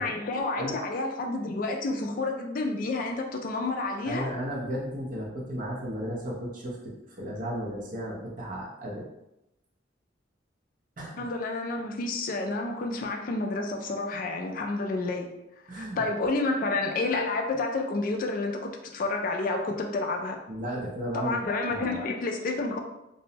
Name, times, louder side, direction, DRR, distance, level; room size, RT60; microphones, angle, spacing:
voice 1, 0.0-4.3 11.2-15.3 15.7-20.4 21.1-22.8, left 3 dB, 45° left, 3 dB, 0.3 m, -30 dB
voice 2, 4.0-9.1 11.0-11.3 15.7-16.0 20.5-21.4 21.7-22.1, right 1 dB, 45° right, -3 dB, 0.6 m, -34 dB
2.5 x 2.0 x 2.8 m, 0.90 s
head